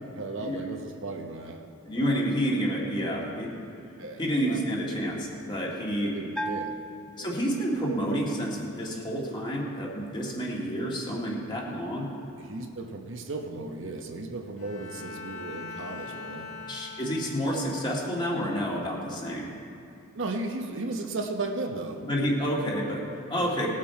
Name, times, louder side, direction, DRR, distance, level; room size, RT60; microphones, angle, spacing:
voice 1, 0.2-1.6 1.9-2.2 4.0-4.6 6.0-6.7 7.1-7.4 12.4-16.5 20.1-22.0 23.4-23.6, right 2 dB, 60° right, 3 dB, 0.9 m, -35 dB
voice 2, 1.9-3.5 4.2-6.1 7.2-12.1 16.7-19.5 22.1-23.7, equal, 20° left, -3 dB, 2.0 m, -29 dB
Bell, 6.3-8.0, right 1 dB, 5° left, 0.3 m, -36 dB
Bowed string instrument, 14.6-17.8, left 4 dB, 80° left, 1.5 m, -41 dB
19.0 x 7.5 x 4.8 m, 2.6 s
head